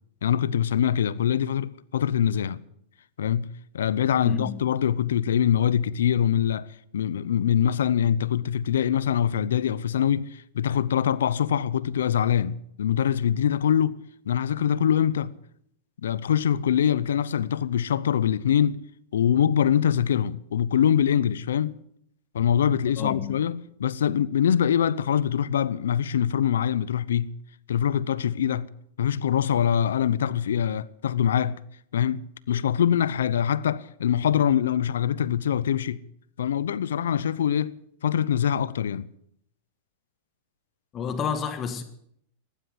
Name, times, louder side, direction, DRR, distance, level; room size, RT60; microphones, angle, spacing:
voice 1, 0.2-2.6 3.2-3.5 3.7-6.7 6.9-14.0 14.3-15.3 16.0-18.8 19.1-21.7 22.3-27.3 27.7-28.7 29.0-31.6 31.9-36.0 36.4-37.7 38.0-39.1, left 9 dB, 85° left, 0.7 m, -24 dB
voice 2, 4.2-4.6 23.0-23.4 40.9-41.8, left 7 dB, 30° left, 1.6 m, -30 dB
15.0 x 12.0 x 7.9 m
hypercardioid pair, 120°, 0 cm